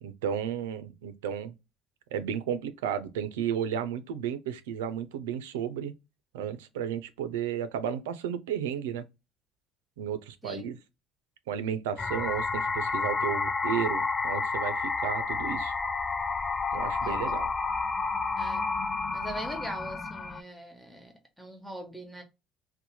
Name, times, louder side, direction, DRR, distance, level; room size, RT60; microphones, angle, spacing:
voice 1, 0.0-1.5 2.1-5.9 6.3-9.1 10.0-10.8 11.5-15.7 16.7-17.5, right 8 dB, 85° right, 0.3 m, -33 dB
sound 1, 12.0-20.4, left 4 dB, 30° left, 0.3 m, -30 dB
voice 2, 19.1-22.2, right 1 dB, 5° right, 0.9 m, -41 dB
2.7 x 2.1 x 2.7 m
hypercardioid pair, 70°, 0 cm